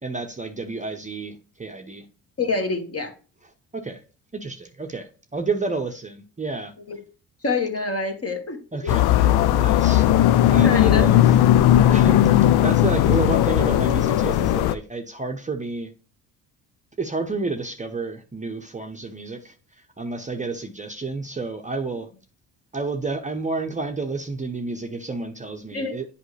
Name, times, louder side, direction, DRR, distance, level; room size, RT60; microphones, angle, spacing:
voice 1, 0.0-2.1 3.4-4.0 4.3-6.7 8.7-10.1 10.5-11.4 11.9-15.9 17.0-22.1 22.7-26.1, right 3 dB, 15° right, 5 dB, 0.8 m, -30 dB
voice 2, 2.4-3.1 6.9-7.0 7.4-8.6 10.4-11.0 25.7-26.0, left 4 dB, 35° left, 5 dB, 1.6 m, -26 dB
sound 1, 8.9-14.7, left 12 dB, 65° left, 0.5 m, -17 dB
8.1 x 5.0 x 3.3 m, 0.37 s
hypercardioid pair, 55°, 42 cm